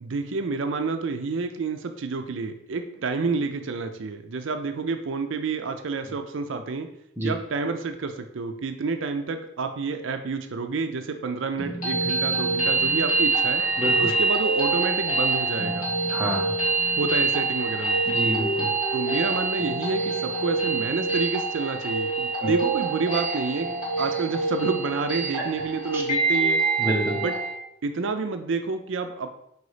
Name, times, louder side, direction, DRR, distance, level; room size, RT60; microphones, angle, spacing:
voice 1, 0.0-6.9 7.2-13.6 14.0-15.9 17.0-18.0 18.9-23.7 24.0-26.6 27.2-27.3 27.8-29.3, right 4 dB, 75° right, 7 dB, 0.5 m, -29 dB
sound 1, 11.6-27.6, right 3 dB, 40° left, 2.1 m, -25 dB
voice 2, 16.1-16.5 18.1-18.7 22.4-22.5 25.9-26.0 26.8-27.2, equal, 10° right, -2 dB, 0.9 m, -27 dB
4.7 x 4.0 x 4.9 m, 0.76 s
head